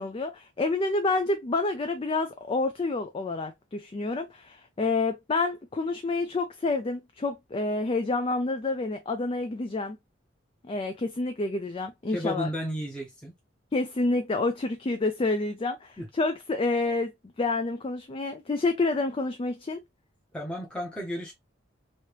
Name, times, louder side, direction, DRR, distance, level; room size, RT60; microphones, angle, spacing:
voice 1, 0.0-10.0 10.6-12.5 13.7-17.1 17.4-19.8, left 3 dB, 30° left, 0.4 m, -28 dB
voice 2, 12.1-13.3 16.0-16.1 20.3-21.3, equal, 5° left, 0.8 m, -33 dB
3.2 x 2.8 x 3.0 m
head